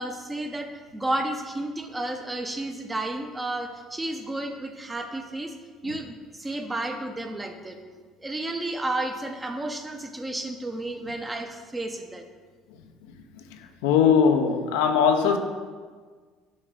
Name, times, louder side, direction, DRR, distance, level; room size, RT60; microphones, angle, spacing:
voice 1, 0.0-5.5 5.8-7.8 8.2-12.2, right 1 dB, 20° right, 5 dB, 0.8 m, -32 dB
voice 2, 13.8-15.4, left 6 dB, 80° left, 6 dB, 0.5 m, -20 dB
7.5 x 3.1 x 5.3 m, 1.5 s
hypercardioid pair, 70°, 0 cm